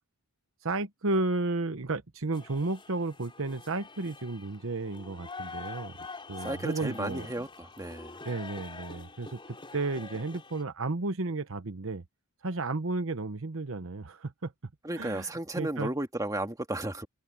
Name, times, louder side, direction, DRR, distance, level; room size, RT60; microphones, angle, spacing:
voice 1, 0.6-5.9 6.3-7.3 8.2-12.0 12.4-14.5 15.0-15.3 15.6-15.9, right 3 dB, 60° right, 1.0 m, -33 dB
sound 1, 2.3-10.6, left 3 dB, 25° left, 4.6 m, -45 dB
voice 2, 6.4-8.2 14.8-17.1, right 1 dB, 15° right, 1.8 m, -34 dB
head